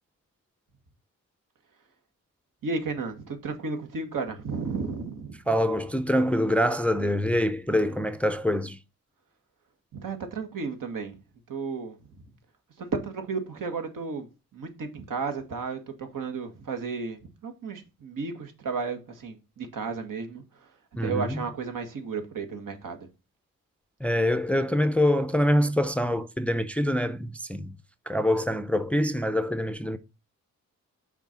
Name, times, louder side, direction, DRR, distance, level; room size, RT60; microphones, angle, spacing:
voice 1, 2.6-5.3 9.9-11.2 11.5-11.9 12.8-14.3 14.5-20.4 21.0-23.0, right 4 dB, 70° right, 1.7 m, -33 dB
voice 2, 5.5-8.8 21.0-21.4 24.0-27.7 28.1-30.0, equal, 5° left, 0.6 m, -25 dB
5.9 x 4.0 x 5.7 m
cardioid pair, 65°, 34 cm